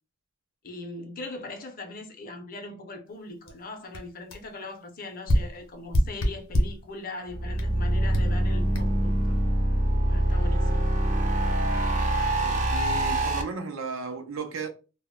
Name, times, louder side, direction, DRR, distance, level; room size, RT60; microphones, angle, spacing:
voice 1, 0.6-9.4 10.1-10.9, left 2 dB, 45° left, 0.5 m, -40 dB
sound 1, 3.5-3.6 3.9-4.0 4.3-4.5 5.3-6.8 7.6-7.7 8.1-8.4 8.7-8.8, equal, 85° left, 0.6 m, -25 dB
sound 2, 7.3-13.4, right 1 dB, 40° right, 0.5 m, -24 dB
voice 2, 12.4-14.7, right 4 dB, 90° right, 0.5 m, -35 dB
2.1 x 2.0 x 3.6 m
head